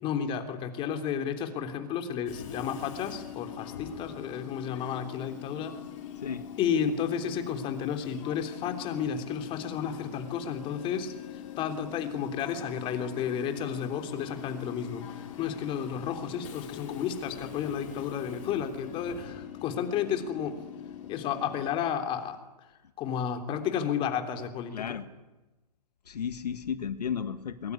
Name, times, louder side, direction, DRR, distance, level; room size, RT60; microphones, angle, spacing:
voice 1, 0.0-5.8 6.6-20.6 21.1-22.4 23.0-25.0, left 8 dB, 25° left, 6 dB, 3.3 m, -32 dB
Train / Subway metro underground, 2.3-21.7, left 10 dB, 50° left, 5.0 m, -42 dB
voice 2, 24.7-25.0 26.1-27.7, left 7 dB, 75° left, 10 dB, 1.8 m, -33 dB
22.0 x 22.0 x 9.8 m, 1.1 s
hypercardioid pair, 140°, 21 cm